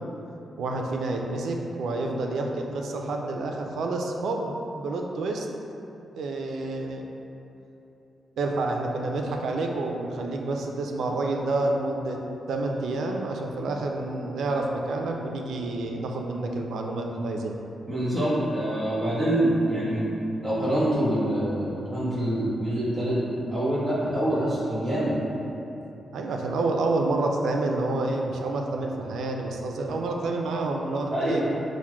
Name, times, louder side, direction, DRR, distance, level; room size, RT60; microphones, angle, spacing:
voice 1, 0.6-5.5 6.2-7.0 8.4-12.2 12.5-17.6 26.1-31.4, right 2 dB, 80° right, 2 dB, 0.3 m, -28 dB
voice 2, 17.9-20.1 20.4-25.2 31.1-31.5, right 1 dB, 5° right, -13 dB, 1.5 m, -25 dB
5.9 x 2.1 x 2.2 m, 3.0 s
wide cardioid pair, 170°, 0 cm